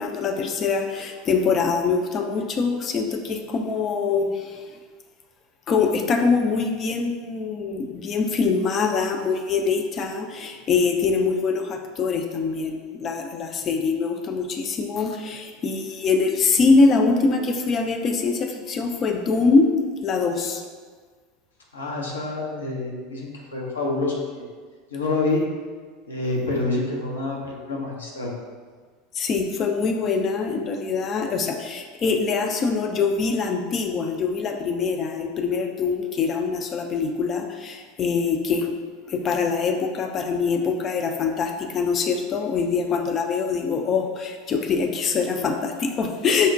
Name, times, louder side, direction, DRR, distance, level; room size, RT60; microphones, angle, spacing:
voice 1, 0.0-4.6 5.7-19.7 20.0-20.6 29.1-38.7 39.1-46.5, left 4 dB, 35° left, 4 dB, 0.4 m, -23 dB
voice 2, 21.7-24.4 24.9-25.4 26.1-28.3, left 3 dB, 80° left, -3 dB, 0.7 m, -27 dB
5.2 x 2.1 x 2.5 m, 1.5 s
figure-of-eight pair, 80°, 0 cm